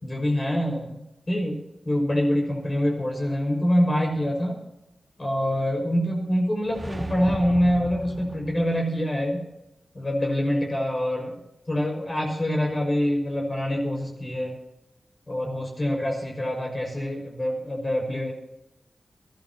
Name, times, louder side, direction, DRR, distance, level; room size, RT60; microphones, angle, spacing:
voice 1, 0.0-1.0 1.3-1.6 1.8-4.6 5.2-9.4 9.9-11.4 11.7-14.6 15.3-18.3, equal, 35° left, 0 dB, 5.9 m, -25 dB
sound 1, 6.6-8.9, right 1 dB, 20° right, 1.4 m, -36 dB
23.0 x 14.0 x 3.0 m, 0.88 s
wide cardioid pair, 85°, 0 cm